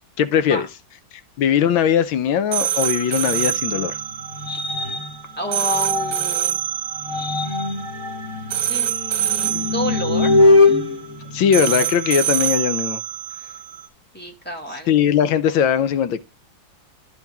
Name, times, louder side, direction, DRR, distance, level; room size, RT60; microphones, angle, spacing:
voice 1, 0.2-0.7 1.4-4.0 11.3-13.0 14.9-16.2, left 8 dB, 85° left, 1.6 m, -19 dB
sound 1, 2.5-13.9, right 11 dB, 50° right, 1.8 m, -26 dB
sound 2, 3.3-6.4 6.9-12.1, left 3 dB, 40° left, 2.0 m, -21 dB
voice 2, 5.4-6.6 8.5-10.4 14.1-14.9, right 1 dB, 5° left, 1.6 m, -30 dB
12.0 x 4.4 x 3.5 m
omnidirectional pair, 2.1 m